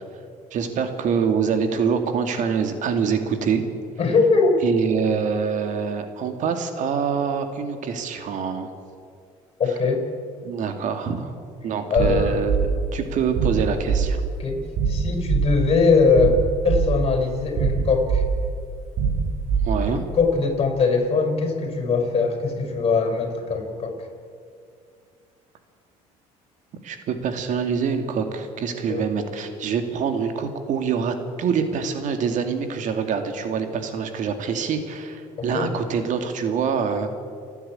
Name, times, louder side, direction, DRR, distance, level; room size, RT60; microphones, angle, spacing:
voice 1, 0.5-3.7 4.6-8.7 10.4-11.3 11.6-14.2 19.6-20.1 26.8-37.1, right 6 dB, 60° right, 7 dB, 2.5 m, -25 dB
voice 2, 4.0-4.6 9.6-10.0 11.9-12.4 14.4-14.6 14.9-18.2 19.9-24.0 28.9-29.1 35.4-35.7, left 4 dB, 40° left, 4 dB, 5.6 m, -21 dB
sound 1, 12.0-20.2, right 5 dB, 75° right, 3.6 m, -24 dB
29.0 x 10.0 x 8.9 m, 2.3 s
supercardioid pair, 95°, 15 cm